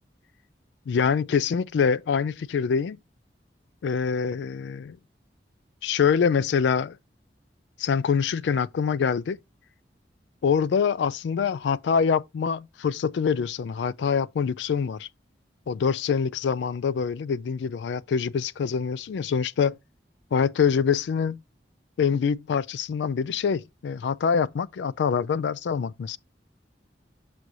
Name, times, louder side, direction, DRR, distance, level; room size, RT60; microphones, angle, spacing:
voice 1, 0.9-3.0 3.8-5.0 5.8-7.0 7.8-9.4 10.4-15.1 15.7-19.8 20.3-21.4 22.0-26.2, left 6 dB, 80° left, 0.3 m, -25 dB
6.2 x 6.0 x 2.6 m
head